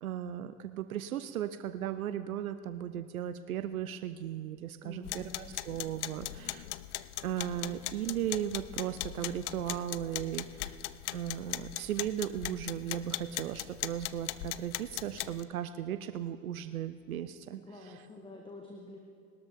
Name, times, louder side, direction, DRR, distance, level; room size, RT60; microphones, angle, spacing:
voice 1, 0.0-6.7 7.2-10.7 11.1-18.0, right 10 dB, 75° right, 12 dB, 0.6 m, -36 dB
voice 2, 4.8-5.6 17.7-19.0, left 2 dB, 10° left, 1 dB, 1.4 m, -48 dB
sound 1, 5.0-15.4, left 16 dB, 55° left, 0.5 m, -39 dB
20.5 x 13.0 x 3.6 m, 2.3 s
figure-of-eight pair, 75°, 42 cm